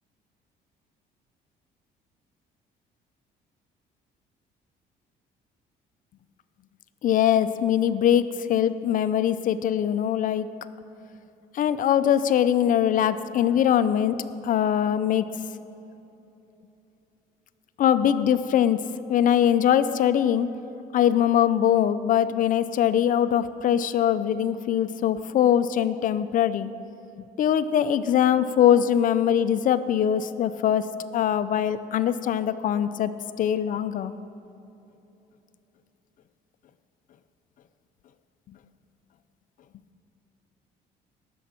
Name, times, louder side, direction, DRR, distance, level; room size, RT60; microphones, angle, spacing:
voice 1, 7.0-10.5 11.5-14.2 14.4-15.3 17.8-18.8 19.1-20.5 20.9-26.7 27.4-30.9 31.1-33.1 33.4-34.1, left 10 dB, 50° left, 13 dB, 0.5 m, -22 dB
18.5 x 7.1 x 4.4 m, 2.9 s
cardioid pair, 110°, 17 cm